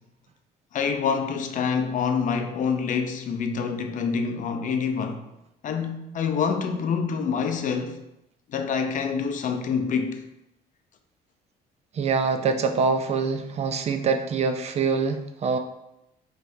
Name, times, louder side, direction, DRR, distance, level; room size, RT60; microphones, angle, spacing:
voice 1, 0.7-5.2 5.6-8.0 8.5-10.2, left 6 dB, 50° left, 0.6 m, -26 dB
voice 2, 11.9-15.6, right 5 dB, 40° right, 0.4 m, -24 dB
5.4 x 3.2 x 2.7 m
cardioid pair, 110°, 17 cm